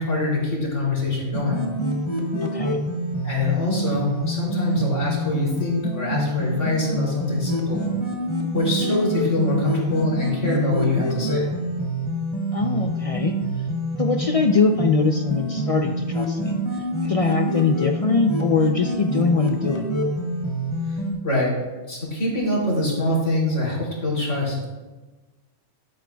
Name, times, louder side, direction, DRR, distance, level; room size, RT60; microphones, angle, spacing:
voice 1, 0.0-1.6 3.2-7.8 8.5-11.5 20.9-21.0 21.2-21.5 21.9-24.7, left 2 dB, 85° left, -4 dB, 3.5 m, -24 dB
sound 1, 1.3-21.1, right 1 dB, 25° left, 1.4 m, -26 dB
voice 2, 2.4-2.8 12.5-13.4 14.0-16.6 17.0-19.9, left 4 dB, 50° left, 4 dB, 0.4 m, -22 dB
12.0 x 11.5 x 2.3 m, 1.2 s
omnidirectional pair, 1.2 m